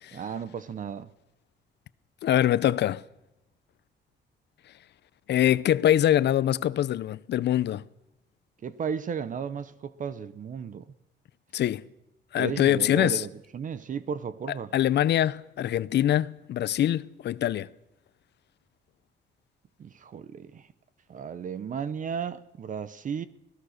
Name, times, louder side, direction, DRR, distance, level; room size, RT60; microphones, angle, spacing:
voice 1, 0.1-1.1 8.6-10.9 12.4-14.7 19.8-20.7 21.1-23.3, right 7 dB, 45° right, 0.8 m, -34 dB
voice 2, 2.2-3.0 5.3-7.8 11.5-11.8 12.3-13.2 14.7-17.7, left 11 dB, 65° left, 0.7 m, -24 dB
25.5 x 17.5 x 6.5 m
cardioid pair, 150°, 19 cm